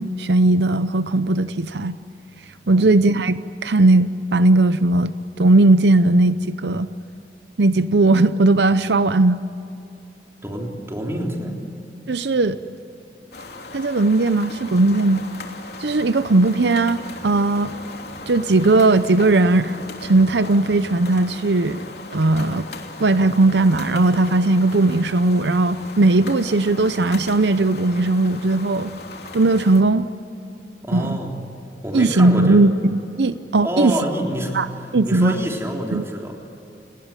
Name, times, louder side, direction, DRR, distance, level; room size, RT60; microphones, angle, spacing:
voice 1, 0.0-2.0 2.7-6.9 7.6-9.4 12.1-12.6 13.7-15.2 15.8-17.7 18.3-21.8 22.1-22.7 23.0-28.9 29.3-30.0 30.9-31.2 31.9-33.9 34.5-34.7 34.9-35.3 35.9-36.0, right 2 dB, 80° right, 13 dB, 0.7 m, -18 dB
voice 2, 10.4-11.6 30.8-31.4 31.8-32.7 33.6-36.4, right 1 dB, 15° right, 0 dB, 3.7 m, -27 dB
sound 1, 13.3-29.8, left 2 dB, 65° left, 3.1 m, -37 dB
29.5 x 19.5 x 9.0 m, 2.8 s
head